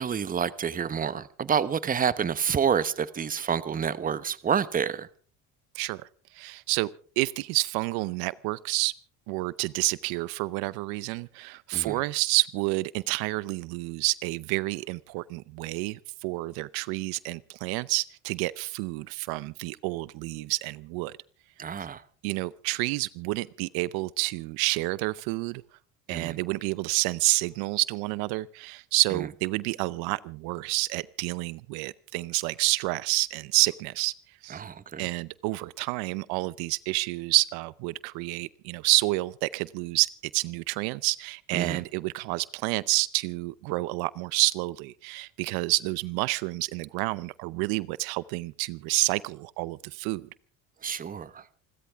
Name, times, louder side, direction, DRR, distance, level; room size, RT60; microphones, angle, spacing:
voice 1, 0.0-5.1 11.7-12.0 21.6-22.0 26.1-26.4 34.5-35.1 41.5-41.8 50.8-51.5, right 7 dB, 25° right, 0.9 m, -28 dB
voice 2, 5.7-6.9 7.2-8.9 9.3-21.2 22.2-25.6 26.1-34.1 34.4-34.6 35.0-50.3, right 23 dB, 80° right, 0.7 m, -29 dB
28.5 x 13.0 x 3.5 m
cardioid pair, 115°, 36 cm